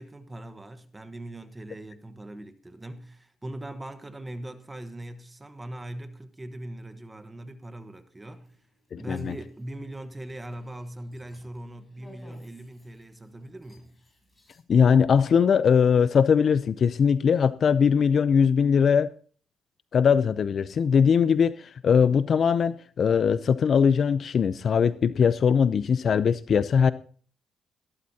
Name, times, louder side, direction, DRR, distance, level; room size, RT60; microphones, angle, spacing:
voice 1, 0.0-8.6 8.9-13.9, right 1 dB, 15° right, 1.2 m, -40 dB
sound 1, 8.3-14.6, left 1 dB, 15° left, 7.9 m, -57 dB
voice 2, 8.9-9.3 14.7-19.1 19.9-26.9, left 7 dB, 55° left, 0.5 m, -21 dB
18.5 x 12.5 x 2.8 m
cardioid pair, 90°, 0 cm